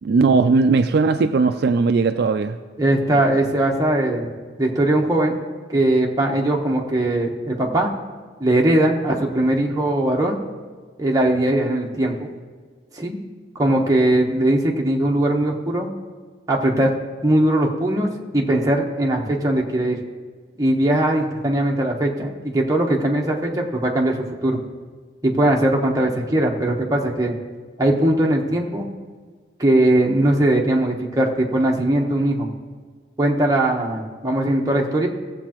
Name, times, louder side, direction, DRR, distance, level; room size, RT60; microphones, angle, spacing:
voice 1, 0.0-2.6, right 4 dB, 60° right, 8 dB, 0.3 m, -18 dB
voice 2, 2.8-4.3 4.6-5.4 5.7-7.9 8.4-10.4 11.0-12.3 12.9-13.2 13.5-15.9 16.5-16.9 17.2-20.0 20.6-24.6 25.2-27.3 27.8-28.8 29.6-32.5 33.2-35.1, right 1 dB, 20° right, 0 dB, 1.0 m, -20 dB
17.5 x 7.5 x 3.0 m, 1.5 s
head